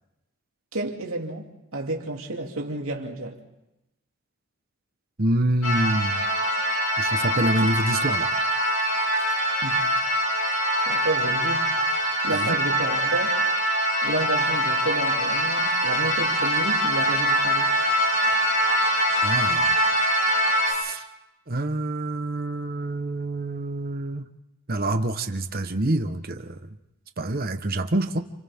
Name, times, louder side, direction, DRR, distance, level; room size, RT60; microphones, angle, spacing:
voice 1, 0.7-3.4 9.6-10.0 10.9-11.7 12.2-13.4 14.0-17.8, right 2 dB, 65° right, 2.8 m, -31 dB
voice 2, 5.2-6.3 7.0-8.3 12.3-12.6 19.2-19.7 20.7-21.0 21.5-24.2 24.7-26.6 27.2-28.2, right 1 dB, 40° right, 1.1 m, -26 dB
sound 1, 5.6-20.7, right 1 dB, 65° left, 7.0 m, -23 dB
29.0 x 28.5 x 3.7 m
head